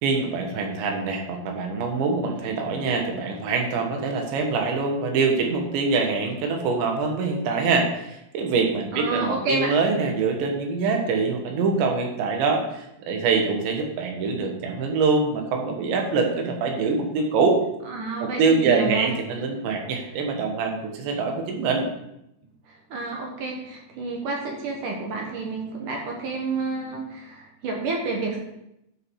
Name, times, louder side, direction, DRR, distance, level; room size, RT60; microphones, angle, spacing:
voice 1, 0.0-17.6 18.2-21.9, right 4 dB, 85° right, 3 dB, 3.8 m, -24 dB
voice 2, 8.9-9.7 17.9-19.1 22.7-28.4, right 3 dB, 60° right, 1 dB, 2.3 m, -29 dB
11.5 x 7.0 x 4.7 m, 0.83 s
omnidirectional pair, 5.0 m